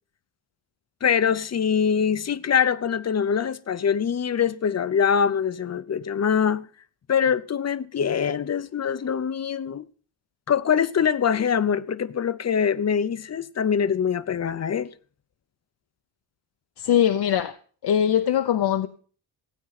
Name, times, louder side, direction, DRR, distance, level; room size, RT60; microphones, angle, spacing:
voice 1, 1.0-6.7 7.1-9.9 10.5-14.9, left 7 dB, 40° left, 0.7 m, -23 dB
voice 2, 16.8-17.6 17.8-18.9, left 9 dB, 65° left, 0.9 m, -21 dB
15.5 x 9.1 x 5.9 m
cardioid pair, 115°, 43 cm